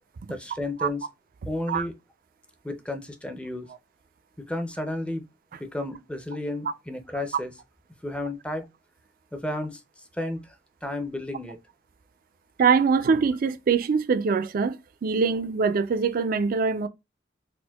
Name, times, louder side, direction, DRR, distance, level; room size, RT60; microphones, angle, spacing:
voice 1, 0.3-1.1 1.4-1.9 2.6-3.7 4.4-5.3 5.6-7.5 8.0-8.7 9.3-9.8 10.1-10.6 10.8-11.6, left 1 dB, 5° left, 0.5 m, -32 dB
voice 2, 12.6-14.8 15.0-16.9, right 5 dB, 50° right, 0.3 m, -23 dB
4.3 x 2.1 x 2.2 m
head